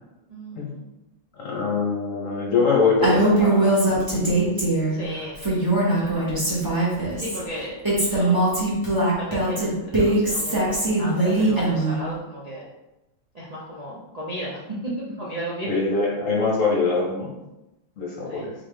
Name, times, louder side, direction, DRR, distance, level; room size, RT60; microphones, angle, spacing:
voice 1, 0.3-0.8 4.9-5.6 6.0-6.5 7.2-8.4 9.2-12.7 13.3-15.7 18.3-18.5, equal, 85° right, -8 dB, 0.3 m, -35 dB
voice 2, 1.4-4.9 15.7-17.3 18.0-18.5, left 4 dB, 50° left, -3 dB, 1.1 m, -24 dB
Female speech woman speaking, 3.0-5.0 5.4-7.4 7.8-12.0, right 2 dB, 15° right, 1.0 m, -21 dB
4.2 x 3.6 x 3.3 m, 0.93 s
omnidirectional pair, 2.1 m